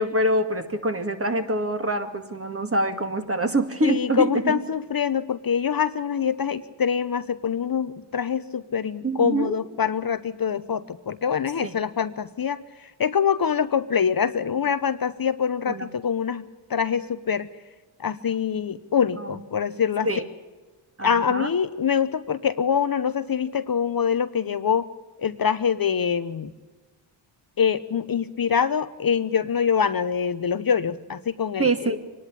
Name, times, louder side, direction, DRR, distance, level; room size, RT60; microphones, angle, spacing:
voice 1, 0.0-4.6 9.0-9.6 11.6-11.8 15.7-15.9 19.2-19.3 20.1-20.2 21.0-21.5 31.6-32.0, right 1 dB, 25° right, 7 dB, 2.2 m, -25 dB
voice 2, 3.8-17.5 18.0-20.1 21.0-24.9 25.2-26.5 27.6-32.0, left 7 dB, 45° left, 13 dB, 0.8 m, -25 dB
24.0 x 11.0 x 10.0 m, 1.3 s
cardioid pair, 55°, 50 cm